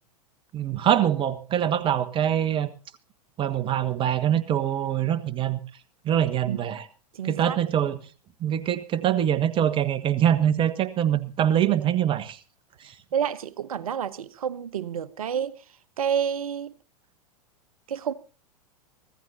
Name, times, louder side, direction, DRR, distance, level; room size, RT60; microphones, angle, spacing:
voice 1, 0.5-2.7 3.4-5.6 6.0-6.8 7.2-8.0 8.4-12.4, right 10 dB, 25° right, 1.2 m, -24 dB
voice 2, 7.1-7.6 13.1-15.6 16.0-16.7 17.9-18.1, right 8 dB, 65° right, 1.0 m, -29 dB
24.5 x 15.5 x 2.8 m
figure-of-eight pair, 95°, 20 cm